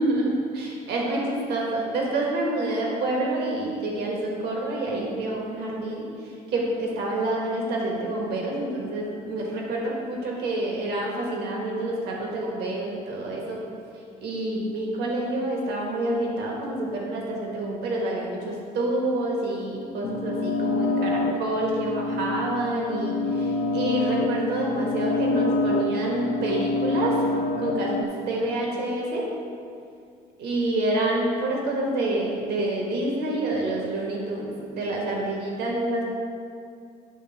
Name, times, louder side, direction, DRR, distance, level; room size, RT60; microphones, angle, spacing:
voice 1, 0.0-6.1 6.5-13.6 14.2-27.3 27.6-29.3 30.4-36.0, right 1 dB, 75° right, -2 dB, 1.5 m, -27 dB
sound 1, 20.0-28.0, left 2 dB, 50° left, 0.6 m, -27 dB
10.0 x 3.5 x 5.8 m, 2.4 s
cardioid pair, 110°, 17 cm